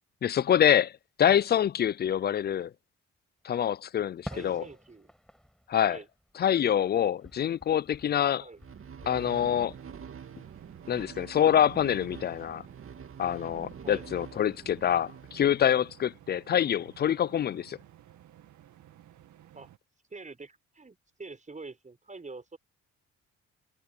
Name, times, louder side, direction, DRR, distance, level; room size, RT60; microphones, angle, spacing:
voice 1, 0.2-0.9 1.2-2.7 3.4-4.6 5.7-6.0 6.4-8.4 9.1-9.7 10.9-12.6 13.2-17.8, left 9 dB, 35° left, 0.4 m, -26 dB
Fireworks, 4.2-6.9 7.2-9.1, equal, ahead, 7.0 m, -48 dB
voice 2, 4.3-5.1 5.9-6.1 8.4-8.6 13.8-14.0 19.5-19.7 20.1-22.6, right 3 dB, 25° right, 6.1 m, -45 dB
sound 1, 8.6-16.0, right 7 dB, 45° right, 2.1 m, -46 dB
sound 2, 9.5-19.8, right 12 dB, 75° right, 2.1 m, -55 dB
cardioid pair, 90°, 30 cm